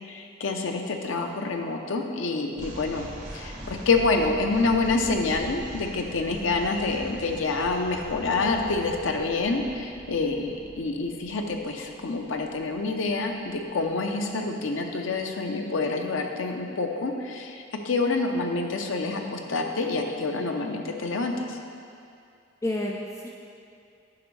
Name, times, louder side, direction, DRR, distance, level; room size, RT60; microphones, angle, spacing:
voice 1, 0.1-3.1 3.3-21.6, left 3 dB, 85° left, 3 dB, 0.6 m, -27 dB
sound 1, 2.5-13.8, equal, 40° right, 1.3 m, -43 dB
voice 2, 3.5-3.9 22.6-23.3, left 1 dB, 15° left, -1 dB, 0.3 m, -31 dB
9.6 x 5.1 x 3.2 m, 2.5 s
head